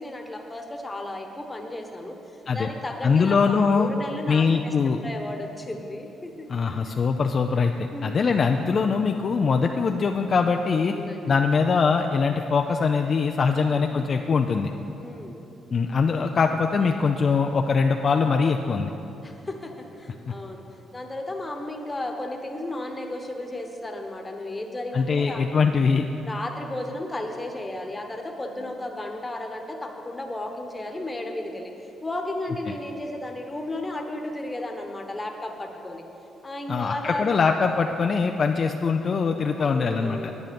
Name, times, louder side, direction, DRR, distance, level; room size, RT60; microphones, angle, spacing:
voice 1, 0.0-6.5 6.8-6.9 7.9-8.1 10.9-11.3 15.0-15.4 19.2-20.6 20.9-25.4 26.3-36.0 36.4-37.3 39.3-40.4, left 1 dB, 20° left, 3 dB, 1.2 m, -34 dB
voice 2, 3.0-3.9 4.3-5.0 6.5-10.9 11.3-14.7 15.7-18.9 20.3-20.4 24.9-26.1 36.7-40.3, left 5 dB, 45° left, 4 dB, 0.4 m, -22 dB
10.0 x 9.3 x 5.3 m, 2.9 s
cardioid pair, 90°, 0 cm